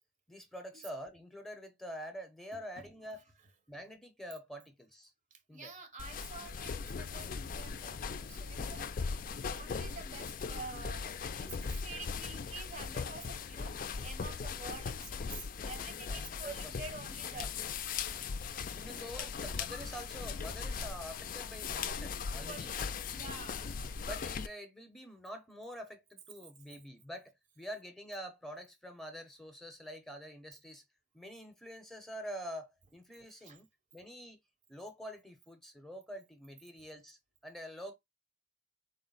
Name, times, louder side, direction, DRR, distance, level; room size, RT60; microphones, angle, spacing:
voice 1, 0.3-3.2 3.7-5.1 5.5-5.7 16.1-16.8 17.3-17.5 18.7-22.7 24.0-30.8 31.1-33.7 33.9-34.4 34.7-37.9, equal, ahead, 0.7 m, -46 dB
voice 2, 2.5-2.9 5.3-8.9 9.5-17.5 18.8-19.3 22.5-23.6 33.4-33.6, right 4 dB, 45° right, 0.8 m, -49 dB
sound 1, 6.0-24.5, left 5 dB, 50° left, 0.4 m, -39 dB
4.0 x 2.1 x 3.8 m
head